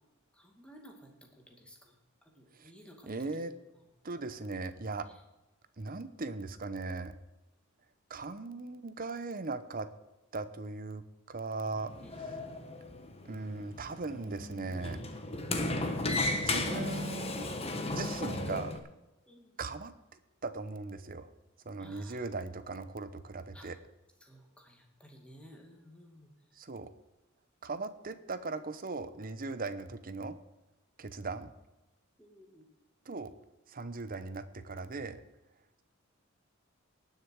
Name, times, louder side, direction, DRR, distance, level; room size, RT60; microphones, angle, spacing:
voice 1, 0.3-1.9 2.3-3.6 5.0-5.1 12.0-12.2 19.3-19.5 21.8-22.2 23.5-23.7 24.2-26.6 27.8-28.0 32.2-32.7, equal, 5° left, 1 dB, 2.3 m, -56 dB
voice 2, 3.0-3.5 4.0-5.1 5.8-7.2 8.1-9.9 10.3-11.9 13.2-15.0 16.4-17.5 17.9-18.7 19.6-21.3 21.6-23.8 26.6-26.9 27.6-30.4 31.0-31.5 33.1-33.3 33.7-35.2, right 3 dB, 45° right, 12 dB, 0.9 m, -38 dB
Sliding door, 11.8-18.8, left 2 dB, 30° left, 1.3 m, -35 dB
19.0 x 6.7 x 4.7 m, 1.0 s
head